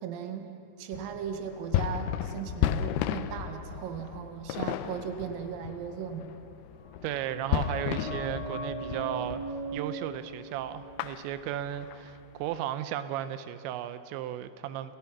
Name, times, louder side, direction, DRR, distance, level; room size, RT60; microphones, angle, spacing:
voice 1, 0.0-6.3, right 8 dB, 65° right, 6 dB, 2.7 m, -37 dB
sound 1, 0.9-9.9 10.2-10.4 10.7-12.6, left 11 dB, 90° left, 2.2 m, -34 dB
sound 2, 6.7-12.1 12.4-12.5, right 2 dB, 15° right, 5.5 m, -40 dB
voice 2, 7.0-15.0, right 11 dB, 90° right, 12 dB, 3.0 m, -35 dB
29.5 x 17.5 x 5.9 m, 2.7 s
omnidirectional pair, 5.1 m